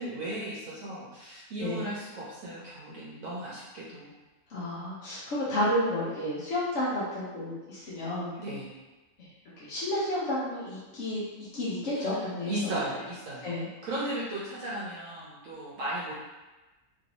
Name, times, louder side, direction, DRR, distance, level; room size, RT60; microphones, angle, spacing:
voice 1, 0.0-4.1 8.4-8.7 11.9-13.5 13.8-16.1, right 1 dB, 70° right, -7 dB, 1.0 m, -36 dB
voice 2, 1.6-1.9 4.5-8.3 9.6-11.2 11.5-12.5 13.4-13.7, left 1 dB, 60° left, -9 dB, 1.0 m, -31 dB
3.0 x 2.6 x 2.9 m, 1.1 s
omnidirectional pair, 1.5 m